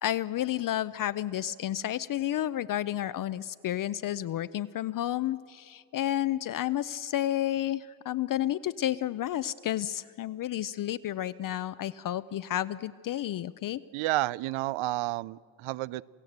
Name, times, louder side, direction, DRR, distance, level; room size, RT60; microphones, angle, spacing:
voice 1, 0.0-13.8, left 12 dB, 45° left, 14 dB, 0.5 m, -31 dB
voice 2, 13.9-16.0, right 18 dB, 85° right, 22 dB, 0.6 m, -30 dB
28.0 x 16.5 x 8.0 m, 2.3 s
cardioid pair, 140°, 48 cm